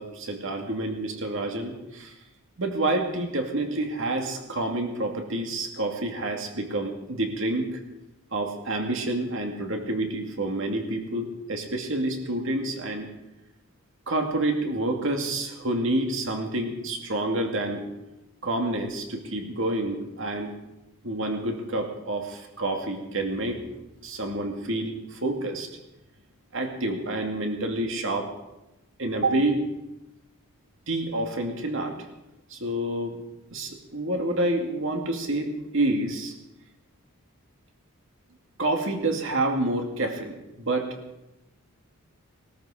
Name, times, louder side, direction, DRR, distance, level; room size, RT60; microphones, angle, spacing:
voice 1, 0.0-2.1 2.6-7.8 8.3-13.1 14.1-17.9 18.4-20.5 21.0-23.6 24.0-25.7 26.5-28.3 29.0-29.6 30.9-32.0 32.5-33.2 33.5-36.3 38.6-40.9, right 2 dB, 60° right, 3 dB, 2.4 m, -28 dB
20.0 x 13.5 x 5.0 m, 0.95 s
head